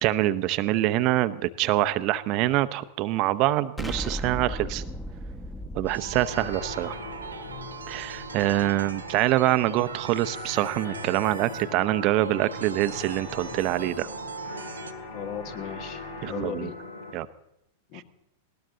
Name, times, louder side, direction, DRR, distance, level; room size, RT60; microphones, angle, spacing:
voice 1, 0.0-4.8 5.7-7.0 7.9-14.1 16.2-16.7 17.1-17.3, right 15 dB, 45° right, 12 dB, 0.8 m, -25 dB
Explosion, 3.8-8.6, equal, 5° left, 1.3 m, -37 dB
sound 1, 5.9-14.9, right 5 dB, 80° right, 1.4 m, -40 dB
sound 2, 6.3-17.1, left 2 dB, 75° left, 3.3 m, -41 dB
voice 2, 15.1-16.8 17.9-18.0, left 8 dB, 45° left, 9 dB, 1.6 m, -36 dB
20.0 x 18.5 x 3.9 m, 0.80 s
figure-of-eight pair, 95°, 0 cm